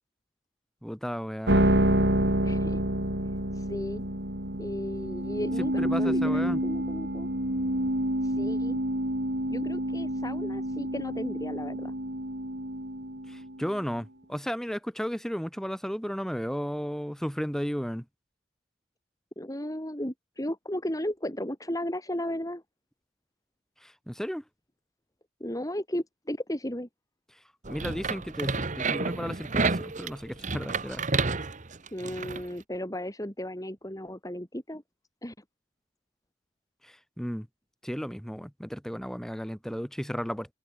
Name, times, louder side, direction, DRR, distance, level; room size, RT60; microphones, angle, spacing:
voice 1, 0.8-1.7 5.6-6.6 13.3-18.1 23.8-24.4 27.7-31.0 36.8-37.5 37.8-40.5, equal, 5° left, 7.0 m, -34 dB
sound 1, 1.5-13.8, right 1 dB, 60° right, 6.0 m, -28 dB
voice 2, 2.4-2.8 3.5-4.0 4.6-7.3 8.2-8.8 9.5-11.9 19.4-22.6 25.4-26.9 31.9-34.8 35.2-35.3, left 1 dB, 20° left, 4.8 m, -35 dB
sound 2, 27.6-32.4, right 4 dB, 40° right, 1.4 m, -30 dB
head